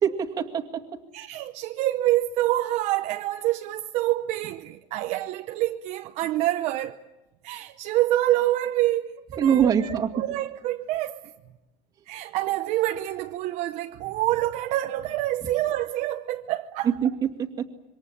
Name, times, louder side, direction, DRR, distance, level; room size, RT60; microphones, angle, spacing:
voice 1, 0.0-1.0 9.4-10.2 16.8-17.7, right 8 dB, 25° right, 2.1 m, -24 dB
voice 2, 1.1-7.0 7.4-11.3 12.1-16.9, right 15 dB, 45° right, 0.8 m, -27 dB
27.0 x 25.0 x 7.4 m
cardioid pair, 175°, 16 cm